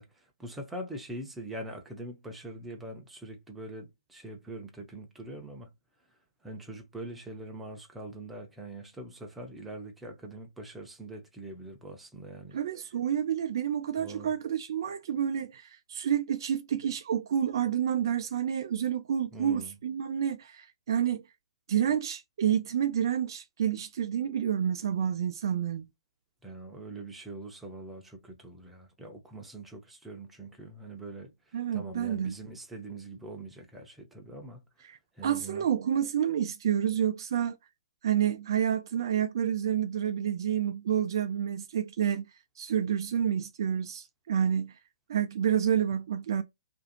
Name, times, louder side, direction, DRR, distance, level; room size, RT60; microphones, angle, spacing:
voice 1, 0.0-5.7 6.1-12.6 14.0-14.3 19.3-19.8 26.4-35.7, right 2 dB, 5° right, 0.6 m, -43 dB
voice 2, 12.5-21.2 21.7-25.9 31.5-32.3 34.9-35.0 35.2-37.6 38.0-42.3 42.6-44.7 45.1-46.4, right 9 dB, 45° right, 0.4 m, -29 dB
2.5 x 2.4 x 2.7 m
figure-of-eight pair, 130°, 3 cm